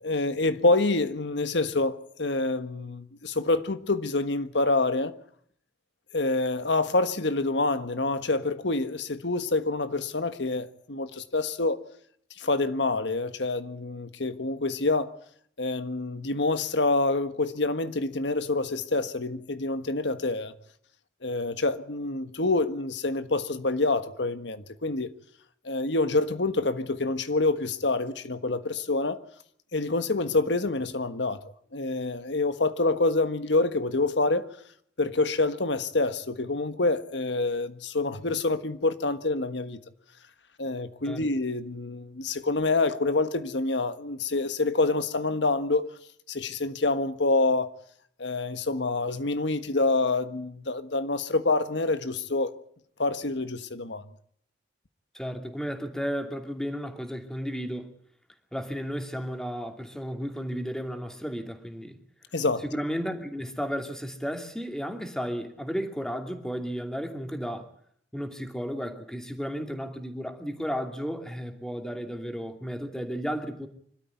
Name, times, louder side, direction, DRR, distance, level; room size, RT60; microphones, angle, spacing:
voice 1, 0.0-5.1 6.1-11.8 12.4-15.1 15.6-20.5 21.2-25.1 25.6-29.2 29.7-31.4 31.7-34.5 35.0-39.8 40.6-45.9 46.3-47.7 48.2-52.6 53.0-54.0 62.3-62.6, left 3 dB, 75° left, 1.5 m, -27 dB
voice 2, 55.1-57.9 58.5-62.0 62.6-67.7 68.1-73.7, equal, 5° left, 2.6 m, -33 dB
25.0 x 13.0 x 9.6 m
head